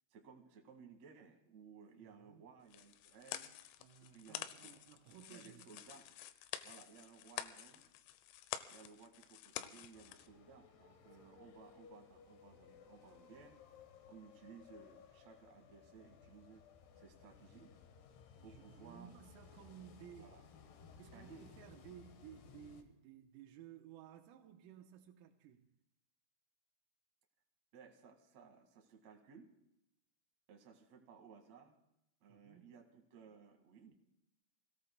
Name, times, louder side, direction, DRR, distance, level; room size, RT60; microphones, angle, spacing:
voice 1, 0.1-3.5 4.0-4.7 5.3-6.1 6.6-7.8 8.7-13.6 14.1-16.6 17.0-17.7 18.4-19.1 20.2-20.4 21.1-21.5 27.7-29.5 30.5-31.8 32.2-33.9, right 6 dB, 55° right, 2.1 m, -59 dB
voice 2, 2.0-2.5 3.8-5.7 11.2-11.3 17.5-17.7 18.4-20.4 21.0-25.7 32.2-32.7, right 10 dB, 90° right, 3.6 m, -57 dB
sound 1, 2.7-10.3, left 13 dB, 90° left, 3.3 m, -49 dB
sound 2, 9.9-22.8, left 6 dB, 70° left, 2.8 m, -60 dB
29.0 x 17.5 x 2.2 m
omnidirectional pair, 5.8 m